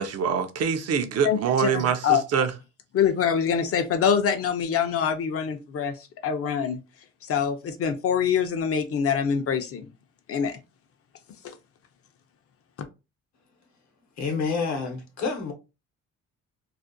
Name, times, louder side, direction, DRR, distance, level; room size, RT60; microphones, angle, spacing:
voice 1, 0.0-2.5, right 7 dB, 55° right, 0.5 m, -25 dB
voice 2, 1.2-2.2 2.9-6.0 6.2-6.8 7.3-9.9 10.3-10.6, left 7 dB, 50° left, 0.5 m, -24 dB
voice 3, 14.2-15.5, left 4 dB, 65° left, 0.8 m, -28 dB
2.4 x 2.1 x 2.5 m
cardioid pair, 90°, 30 cm